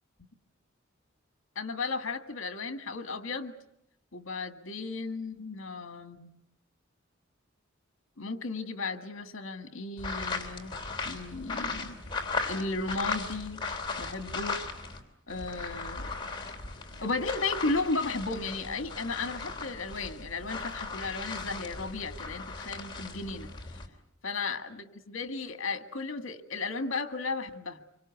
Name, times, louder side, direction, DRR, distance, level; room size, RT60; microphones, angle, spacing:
voice 1, 1.6-3.5 4.1-6.4 8.2-10.7 11.1-12.0 12.5-13.7 14.0-14.6 15.3-16.2 17.0-23.5 24.2-24.6 24.9-27.8, left 3 dB, 75° left, 9 dB, 1.8 m, -34 dB
sound 1, 10.0-15.0 15.3-23.9, left 4 dB, 25° left, 3.2 m, -37 dB
26.5 x 24.5 x 8.3 m, 0.79 s
head